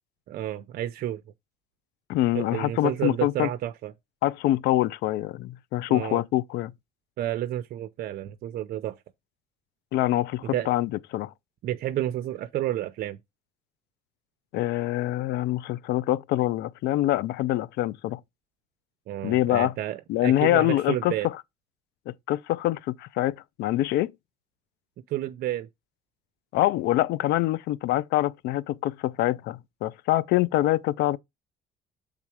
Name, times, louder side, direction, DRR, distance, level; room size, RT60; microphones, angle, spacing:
voice 1, 0.3-1.2 2.3-3.9 5.9-6.2 7.2-9.0 10.5-10.7 11.6-13.2 19.1-21.3 25.1-25.7, right 13 dB, 65° right, 0.6 m, -30 dB
voice 2, 2.1-3.5 4.2-6.7 9.9-11.3 14.5-18.2 19.2-19.7 20.1-21.3 22.1-24.1 26.5-31.2, left 15 dB, 80° left, 0.5 m, -25 dB
7.4 x 3.6 x 4.6 m
cardioid pair, 110°, 17 cm